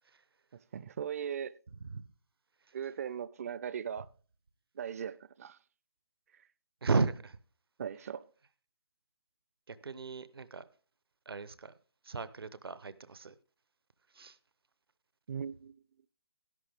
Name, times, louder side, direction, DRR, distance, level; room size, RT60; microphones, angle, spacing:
voice 1, 0.7-1.5 2.7-4.1 4.8-5.6 7.8-8.3 15.3-15.8, right 8 dB, 35° right, 0.4 m, -38 dB
voice 2, 6.8-7.4 9.7-10.7 11.3-11.7 12.0-13.3 14.1-14.4, right 4 dB, 75° right, 0.8 m, -35 dB
13.0 x 11.5 x 3.5 m
figure-of-eight pair, 155°, 13 cm